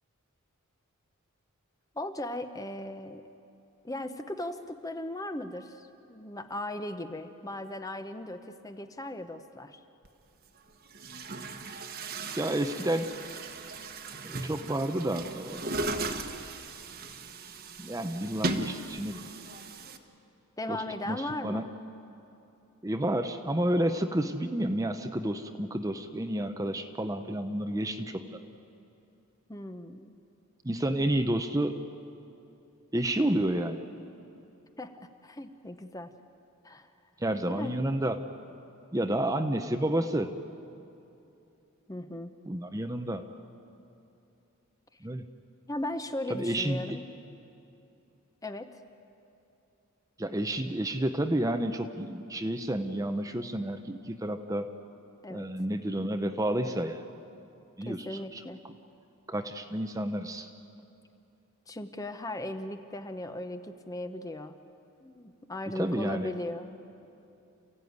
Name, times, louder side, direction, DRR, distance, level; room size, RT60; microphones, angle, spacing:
voice 1, 1.9-3.3 3.8-9.8 20.6-21.6 29.5-30.1 34.8-36.1 36.6-36.9 37.5-37.8 39.4-39.5 41.9-42.3 44.9-45.0 45.7-47.1 48.4-48.8 55.2-55.5 57.8-58.6 61.7-64.6 65.0-66.8, left 1 dB, 15° left, 8 dB, 0.8 m, -38 dB
Chatter / Gurgling / Tap, 10.0-10.1 10.9-20.0, right 2 dB, 45° right, 1.2 m, -37 dB
voice 2, 12.4-13.1 14.2-15.8 17.8-19.2 20.7-21.7 22.8-28.4 30.6-31.8 32.9-33.8 37.2-38.2 38.9-40.3 42.5-43.3 45.0-45.2 46.3-46.8 50.2-54.7 55.3-57.0 57.8-58.4 59.3-60.5 65.8-66.3, right 1 dB, 15° right, 7 dB, 0.7 m, -30 dB
28.5 x 15.5 x 9.5 m, 2.8 s
head